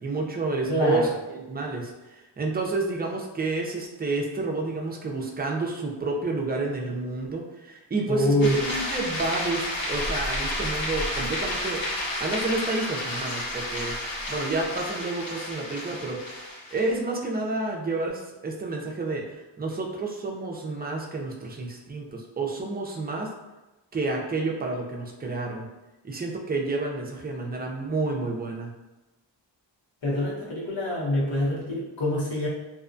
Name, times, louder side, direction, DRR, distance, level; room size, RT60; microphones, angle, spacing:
voice 1, 0.0-11.8 12.2-13.9 14.3-16.2 16.7-19.2 19.6-23.3 23.9-25.7 26.0-28.7, right 3 dB, 20° right, 0 dB, 0.4 m, -30 dB
voice 2, 0.7-1.1 8.1-8.6 30.0-32.5, left 1 dB, 80° left, -6 dB, 1.0 m, -25 dB
sound 1, 8.4-17.0, left 1 dB, 50° left, 0.7 m, -31 dB
2.7 x 2.1 x 2.5 m, 1.1 s
wide cardioid pair, 90°, 44 cm